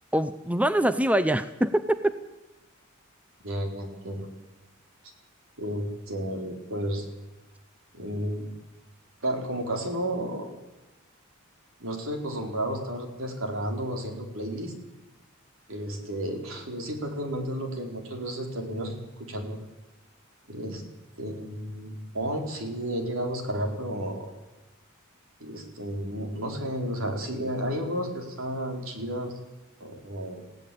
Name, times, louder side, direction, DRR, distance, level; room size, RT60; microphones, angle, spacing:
voice 1, 0.1-2.1, right 1 dB, 5° right, 11 dB, 0.6 m, -24 dB
voice 2, 3.4-4.3 5.6-7.0 7.9-8.5 9.2-10.5 11.8-14.7 15.7-19.6 20.5-20.8 21.2-24.3 25.4-29.3 29.8-30.5, right 1 dB, 65° right, 3 dB, 4.2 m, -32 dB
20.0 x 16.5 x 8.6 m, 1.0 s
head